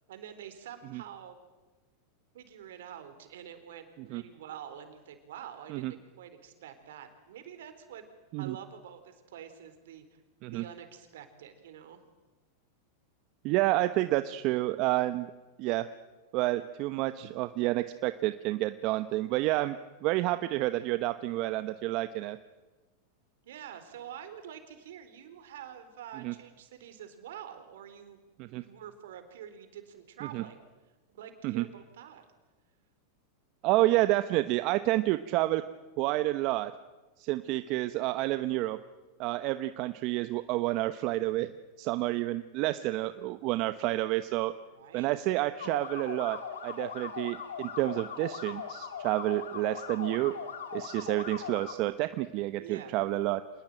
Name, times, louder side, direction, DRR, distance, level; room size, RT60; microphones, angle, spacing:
voice 1, 0.1-1.4 2.3-8.1 8.4-12.0 14.2-14.3 17.5-17.7 23.4-30.6 31.1-32.3 44.8-45.1 45.5-45.7 52.6-53.0, right 9 dB, 75° right, 9 dB, 4.1 m, -47 dB
voice 2, 13.4-15.3 15.6-15.9 16.3-19.8 20.0-22.4 26.2-26.3 28.4-28.6 30.3-30.4 31.4-31.6 33.6-35.6 36.0-36.7 37.2-38.8 39.2-41.5 41.8-44.5 44.9-46.4 46.6-50.3 50.7-53.4, right 17 dB, 50° right, 11 dB, 1.0 m, -29 dB
sound 1, 45.6-51.7, left 7 dB, 85° left, 3.4 m, -40 dB
26.5 x 20.0 x 9.1 m, 1.2 s
hypercardioid pair, 110°, 0 cm